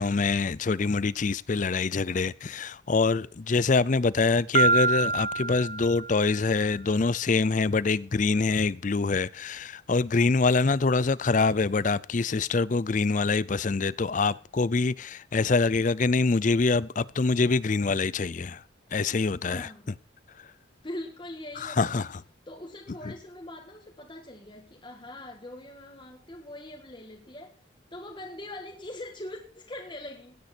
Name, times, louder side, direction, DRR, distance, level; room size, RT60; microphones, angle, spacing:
voice 1, 0.0-18.6 18.9-19.9 20.4-20.5 21.6-22.1, left 4 dB, 40° left, 0.5 m, -25 dB
Piano, 4.5-6.4, right 3 dB, 40° right, 0.8 m, -25 dB
voice 2, 19.4-19.9 20.8-22.1 22.5-27.6 27.9-30.4, left 1 dB, 25° left, 1.6 m, -42 dB
17.0 x 9.5 x 4.4 m
head